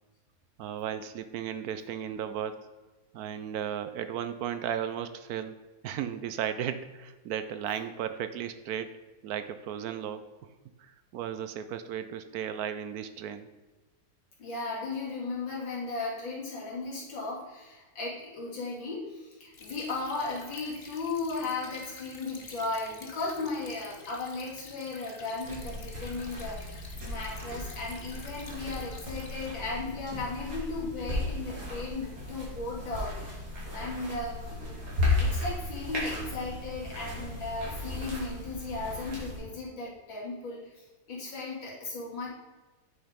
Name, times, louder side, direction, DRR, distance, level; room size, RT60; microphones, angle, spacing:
voice 1, 0.6-2.7 3.1-9.0 9.2-10.5 10.8-13.5, right 9 dB, 75° right, 11 dB, 0.9 m, -35 dB
voice 2, 14.4-33.4 33.7-34.8 35.2-40.6 41.1-42.3, left 3 dB, 75° left, -6 dB, 3.1 m, -36 dB
Stream / Trickle dribble, 19.5-29.5, left 3 dB, 40° left, 1.1 m, -49 dB
sound 1, 25.4-39.4, left 2 dB, 50° right, 3.5 m, -35 dB
9.5 x 5.8 x 5.1 m, 1.2 s
omnidirectional pair, 2.1 m